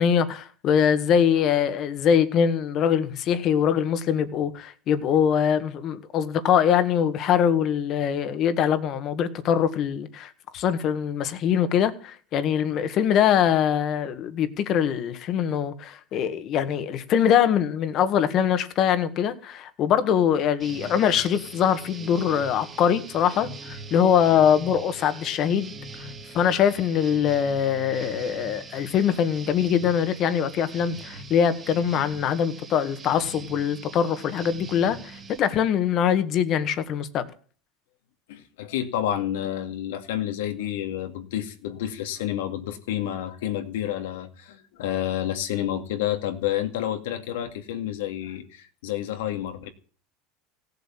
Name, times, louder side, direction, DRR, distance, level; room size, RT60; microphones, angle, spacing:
voice 1, 0.0-25.7 26.3-37.3, left 8 dB, 40° left, 1.7 m, -23 dB
sound 1, 20.6-35.4, right 3 dB, 20° right, 2.5 m, -42 dB
voice 2, 38.3-49.7, left 11 dB, 90° left, 2.2 m, -29 dB
17.0 x 8.0 x 7.5 m
supercardioid pair, 145°, 0 cm